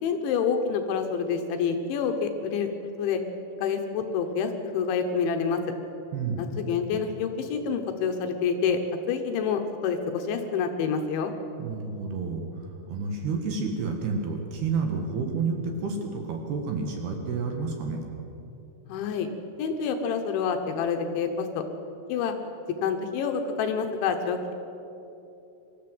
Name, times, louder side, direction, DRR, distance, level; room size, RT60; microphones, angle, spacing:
voice 1, 0.0-3.2 3.6-5.6 6.4-8.8 9.1-11.3 18.9-19.3 19.6-21.6 22.1-22.3 22.8-24.5, left 6 dB, 75° left, 5 dB, 3.2 m, -27 dB
voice 2, 6.1-6.5 11.6-18.0, right 4 dB, 60° right, 2 dB, 3.2 m, -30 dB
24.0 x 14.0 x 7.8 m, 2.9 s
omnidirectional pair, 5.9 m